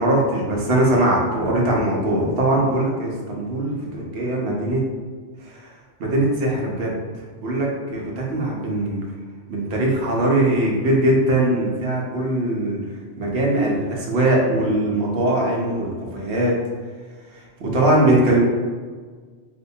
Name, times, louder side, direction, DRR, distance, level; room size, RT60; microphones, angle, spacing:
voice 1, 0.0-4.8 5.4-5.7 6.0-6.9 7.4-9.0 9.5-12.8 13.2-16.6 17.6-18.4, right 1 dB, 65° right, -2 dB, 1.0 m, -21 dB
4.6 x 2.2 x 2.7 m, 1.5 s
omnidirectional pair, 1.3 m